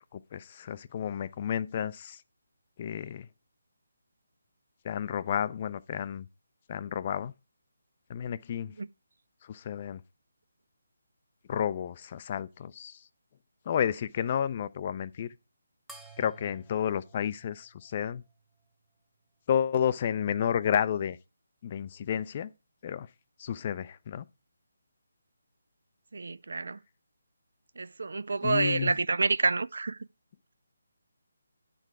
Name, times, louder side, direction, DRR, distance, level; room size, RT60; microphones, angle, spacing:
voice 1, 0.1-2.2 2.8-3.3 4.8-6.3 6.7-7.3 8.1-8.7 9.4-10.0 11.5-13.0 13.7-15.3 16.2-18.2 19.5-21.2 21.6-22.5 22.8-23.1 23.4-24.2 28.4-28.9, left 8 dB, 35° left, 0.4 m, -31 dB
sound 1, 15.9-18.7, right 3 dB, 5° right, 0.7 m, -54 dB
voice 2, 26.1-26.8 27.8-30.0, right 3 dB, 65° right, 0.3 m, -28 dB
9.6 x 4.7 x 4.7 m
figure-of-eight pair, 150°, 0 cm